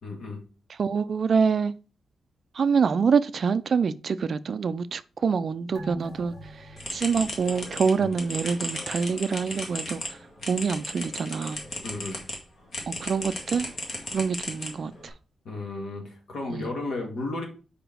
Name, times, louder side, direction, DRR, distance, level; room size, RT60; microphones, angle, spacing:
voice 1, 0.0-0.4 8.0-8.1 11.8-12.2 15.4-17.4, left 2 dB, 65° left, 2.3 m, -33 dB
voice 2, 0.8-1.7 2.5-6.4 6.9-10.0 10.5-11.6 12.9-13.7 14.1-15.1 16.5-16.7, right 5 dB, 40° right, 0.4 m, -25 dB
sound 1, 5.7-8.7 9.0-9.1, right 1 dB, 20° left, 2.1 m, -44 dB
sound 2, 6.8-12.4 12.7-15.1, left 1 dB, 40° left, 1.8 m, -35 dB
5.0 x 4.9 x 6.2 m
wide cardioid pair, 180°, 0 cm